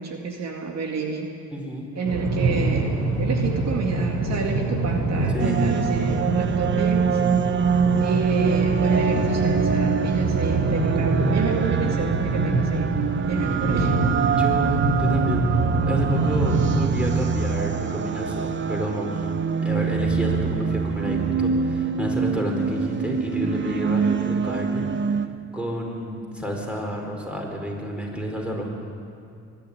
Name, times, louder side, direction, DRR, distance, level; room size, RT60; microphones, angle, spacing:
voice 1, 0.0-1.3 2.0-7.7 8.0-14.0, right 4 dB, 60° right, 2 dB, 2.2 m, -29 dB
voice 2, 1.5-1.9 5.3-5.6 14.3-15.5 15.9-19.3 19.6-24.9 25.5-28.7, equal, 5° right, 0 dB, 4.9 m, -29 dB
sound 1, 2.1-16.8, right 2 dB, 85° right, 3.0 m, -25 dB
sound 2, 5.4-25.3, right 6 dB, 40° right, 0.9 m, -25 dB
23.5 x 11.5 x 10.0 m, 2.5 s
cardioid pair, 90°, 30 cm